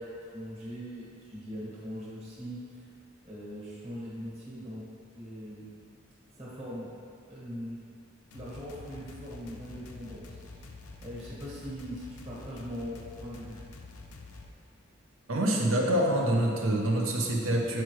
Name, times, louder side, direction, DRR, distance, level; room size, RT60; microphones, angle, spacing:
voice 1, 0.0-2.8 3.2-4.8 5.1-5.7 6.3-6.9 7.3-7.8 8.3-10.4 11.0-13.6, equal, 30° right, -7 dB, 1.5 m, -41 dB
sound 1, 8.3-14.5, left 3 dB, 85° left, 0.6 m, -47 dB
voice 2, 15.3-17.8, right 1 dB, 75° right, -1 dB, 0.9 m, -26 dB
7.7 x 4.6 x 3.2 m, 2.2 s
head